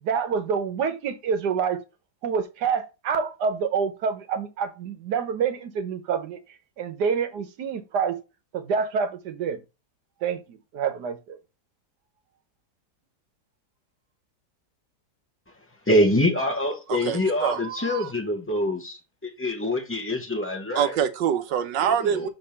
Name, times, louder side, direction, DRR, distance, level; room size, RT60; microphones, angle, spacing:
voice 1, 0.0-1.8 2.2-6.4 6.8-8.2 8.5-9.6 10.2-11.4, right 6 dB, 70° right, 1.5 m, -27 dB
voice 2, 15.9-20.9 22.1-22.3, left 1 dB, 15° left, 0.5 m, -25 dB
voice 3, 16.9-18.1 20.7-22.3, right 9 dB, 85° right, 1.5 m, -25 dB
6.8 x 3.5 x 5.7 m
omnidirectional pair, 1.9 m